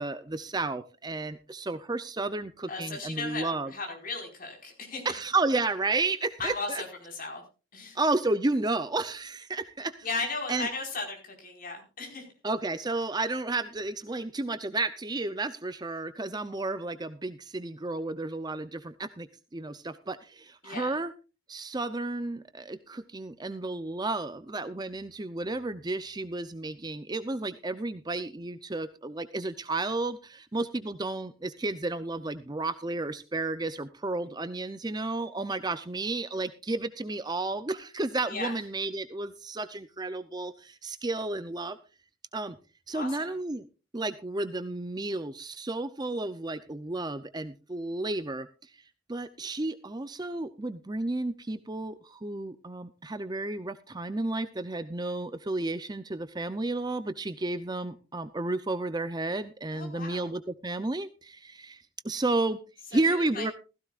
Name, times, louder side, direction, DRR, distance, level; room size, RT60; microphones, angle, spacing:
voice 1, 0.0-3.7 5.0-6.8 7.9-9.9 10.5-10.7 12.4-19.3 19.5-21.1 21.5-41.8 42.3-42.6 42.9-43.6 43.9-48.7 49.1-62.6 62.9-63.5, right 2 dB, 20° right, 11 dB, 0.6 m, -32 dB
voice 2, 2.7-5.0 6.4-7.4 7.7-8.0 10.0-12.3 20.6-21.0 38.3-38.6 42.9-43.3 59.7-60.3 62.9-63.5, left 3 dB, 45° left, 1 dB, 4.9 m, -36 dB
15.5 x 15.5 x 2.4 m, 0.31 s
head